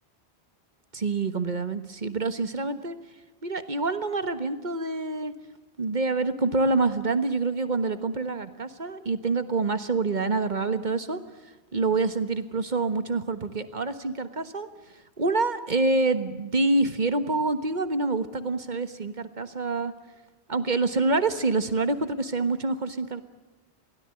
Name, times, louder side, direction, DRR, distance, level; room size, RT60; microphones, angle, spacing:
voice 1, 0.9-3.0 3.4-5.3 5.8-11.2 11.7-14.7 15.2-19.9 20.5-23.2, right 3 dB, 45° right, 11 dB, 1.5 m, -26 dB
23.0 x 17.0 x 9.8 m, 1.2 s
omnidirectional pair, 1.1 m